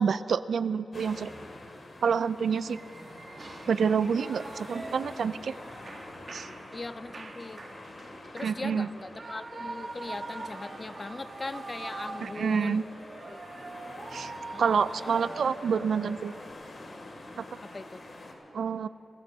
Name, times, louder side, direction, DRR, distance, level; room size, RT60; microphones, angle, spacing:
voice 1, 0.0-1.3 2.0-2.8 3.7-5.5 6.3-6.5 8.4-8.9 12.2-12.8 14.1-14.3 14.6-16.3 17.4-17.5 18.5-18.9, right 6 dB, 80° right, 15 dB, 0.4 m, -28 dB
crossing cars drive past, 0.9-18.3, left 2 dB, 65° left, 2.5 m, -46 dB
Shout / Cheering, 2.7-16.5, right 3 dB, 60° right, 1.3 m, -43 dB
voice 2, 4.7-5.4 6.7-7.6 8.3-12.9 13.3-13.4 14.5-15.2 17.7-18.0, left 3 dB, 40° left, 14 dB, 0.5 m, -40 dB
27.5 x 14.5 x 2.8 m, 2.8 s
cardioid pair, 45°, 0 cm